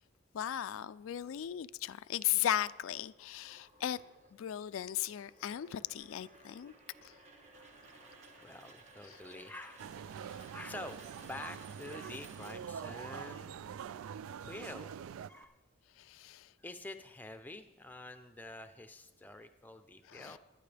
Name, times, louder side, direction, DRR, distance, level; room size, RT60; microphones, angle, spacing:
voice 1, 0.3-4.0 4.4-6.7 7.0-7.1 16.0-16.5 20.1-20.4, left 11 dB, 80° left, 0.3 m, -36 dB
sound 1, 2.6-13.1, right 2 dB, 35° right, 1.4 m, -58 dB
Rain, 7.5-15.4, right 3 dB, 70° right, 1.0 m, -62 dB
voice 2, 8.4-9.9 10.5-13.6 14.4-15.0 15.3-15.6 16.6-20.4, left 2 dB, 10° left, 0.5 m, -47 dB
sound 2, 9.8-15.3, right 8 dB, 90° right, 0.3 m, -45 dB
22.0 x 9.9 x 3.4 m
head